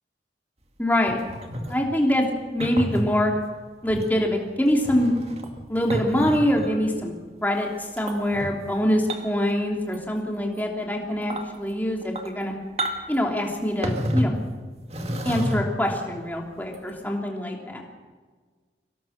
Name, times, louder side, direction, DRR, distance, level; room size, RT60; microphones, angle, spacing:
voice 1, 0.8-1.2 1.7-2.2 2.5-3.3 3.8-5.1 5.7-7.1 7.4-7.7 8.0-12.5 13.1-14.5 15.2-17.8, left 1 dB, 10° left, 0 dB, 3.0 m, -24 dB
sound 1, 1.1-1.8 2.6-3.1 3.9-4.1 4.7-6.8 8.0-8.5 9.1-9.5 9.8-10.2 10.6-10.7 11.2-11.5 12.0-12.4 12.8-13.2 13.8-14.4 14.9-15.9 16.7-16.9, equal, 35° right, 2.0 m, -30 dB
24.0 x 18.0 x 6.6 m, 1.5 s
head